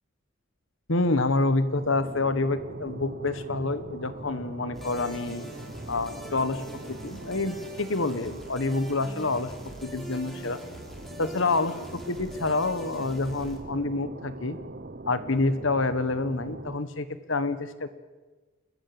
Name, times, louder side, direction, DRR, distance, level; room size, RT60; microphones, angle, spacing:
voice 1, 0.9-5.5 5.9-6.6 6.9-9.5 9.8-10.6 11.2-14.6 15.1-17.9, left 2 dB, 60° left, 13 dB, 1.4 m, -27 dB
sound 1, 1.7-16.8, right 2 dB, 45° right, 0.8 m, -42 dB
sound 2, 4.7-13.6, equal, ahead, 3.3 m, -43 dB
29.5 x 14.0 x 7.9 m, 1.3 s
head